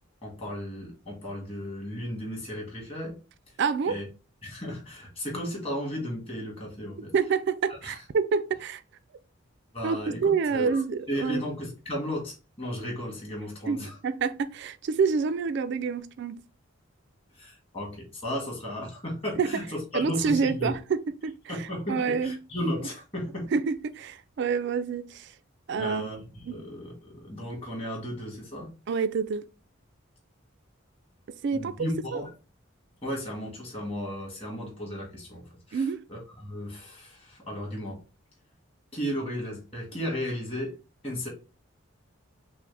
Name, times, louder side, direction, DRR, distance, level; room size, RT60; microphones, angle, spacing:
voice 1, 0.2-3.1 3.8-4.1 4.4-7.1 7.7-8.0 9.7-10.8 11.1-14.0 17.3-20.7 21.5-23.5 25.7-28.7 31.5-32.3 33.0-35.4 35.7-38.0 38.9-40.8 41.0-41.3, equal, 30° left, 1.6 m, -35 dB
voice 2, 3.6-4.0 7.1-8.8 9.8-11.4 13.7-16.4 19.4-19.5 19.9-21.3 21.9-22.4 23.5-25.3 25.7-26.1 26.5-26.6 28.9-29.4 31.4-31.7 32.1-32.2 35.7-36.0, right 5 dB, 55° right, 0.3 m, -27 dB
5.9 x 2.1 x 3.2 m
head